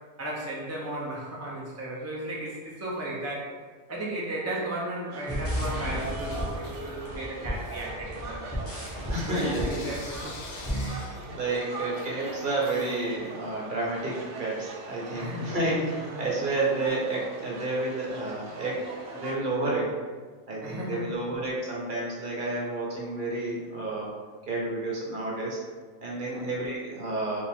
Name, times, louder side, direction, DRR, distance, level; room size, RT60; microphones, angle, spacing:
voice 1, 0.2-3.6 3.9-8.5 9.3-10.4 10.6-11.2 15.1-16.4 20.6-21.1 26.2-26.5, right 1 dB, 20° right, -5 dB, 0.5 m, -35 dB
sound 1, 5.1-19.3, right 2 dB, 85° right, 1.0 m, -41 dB
sound 2, 5.3-10.9, equal, 10° left, 1.1 m, -34 dB
Bell / Coin (dropping), 5.6-7.1 7.5-13.5, left 3 dB, 70° left, 0.9 m, -46 dB
voice 2, 9.1-9.9 11.3-18.8 19.1-19.9 20.5-24.1 24.5-25.6 26.0-27.4, right 2 dB, 45° right, -4 dB, 1.1 m, -30 dB
4.8 x 2.5 x 3.6 m, 1.5 s
omnidirectional pair, 1.2 m